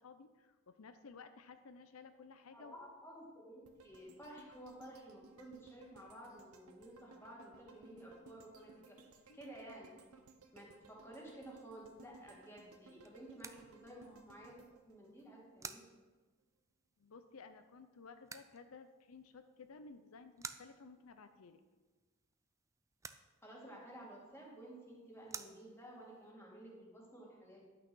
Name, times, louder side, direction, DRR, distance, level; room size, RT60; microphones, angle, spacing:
voice 1, 0.0-2.8 8.6-8.7 9.3-9.4 17.0-21.6, left 4 dB, 75° left, 9 dB, 0.5 m, -56 dB
voice 2, 2.5-9.0 9.3-9.9 10.5-15.8 23.4-27.6, right 1 dB, 10° left, -3 dB, 2.2 m, -53 dB
sound 1, 3.6-15.8 16.2-16.3, right 3 dB, 85° right, 1.0 m, -62 dB
sound 2, 11.4-26.3, right 5 dB, 15° right, 0.3 m, -56 dB
11.0 x 6.2 x 6.1 m, 1.3 s
head